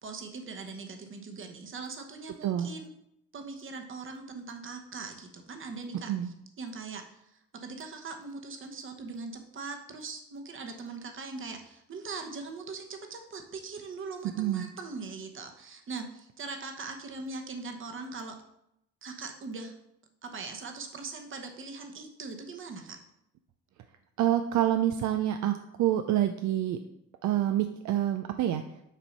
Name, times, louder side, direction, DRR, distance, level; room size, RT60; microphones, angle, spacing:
voice 1, 0.0-2.9 3.3-7.0 7.5-18.3 19.0-19.7 20.2-23.0, right 4 dB, 40° right, 4 dB, 1.0 m, -41 dB
voice 2, 14.4-14.7 24.2-26.8 27.2-28.6, right 12 dB, 70° right, 7 dB, 0.5 m, -27 dB
7.4 x 2.7 x 5.3 m, 0.80 s
cardioid pair, 90°, 30 cm